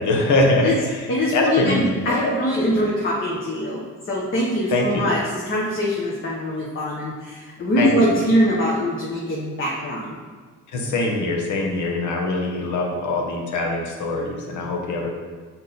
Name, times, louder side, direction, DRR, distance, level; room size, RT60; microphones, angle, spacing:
voice 1, 0.0-2.3 2.7-2.8 4.7-5.0 7.8-8.2 10.7-15.1, left 2 dB, 75° left, 0 dB, 1.2 m, -23 dB
voice 2, 1.1-3.8 4.1-10.1, equal, 40° left, -5 dB, 1.1 m, -23 dB
6.5 x 4.1 x 4.0 m, 1.5 s
cardioid pair, 90°, 30 cm